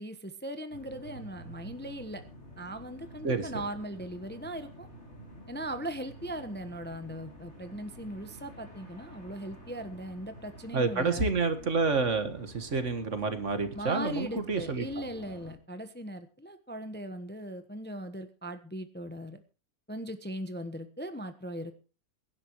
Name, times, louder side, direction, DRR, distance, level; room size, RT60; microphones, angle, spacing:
voice 1, 0.0-2.2 2.6-4.9 5.5-11.3 13.7-19.4 19.9-21.7, right 1 dB, 10° left, 9 dB, 0.9 m, -39 dB
sound 1, 0.7-15.5, equal, 45° left, 3.8 m, -49 dB
voice 2, 10.7-14.8, right 4 dB, 50° right, 9 dB, 1.9 m, -29 dB
23.0 x 11.0 x 3.1 m, 0.36 s
omnidirectional pair, 1.6 m